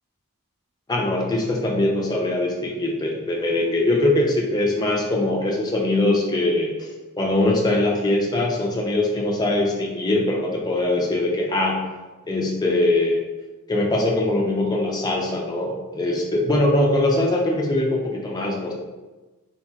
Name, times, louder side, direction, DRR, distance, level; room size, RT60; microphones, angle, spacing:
voice 1, 0.9-6.9 7.2-11.8 12.3-13.2 13.7-18.7, left 1 dB, 20° left, -1 dB, 0.3 m, -22 dB
2.8 x 2.8 x 2.3 m, 1.2 s
head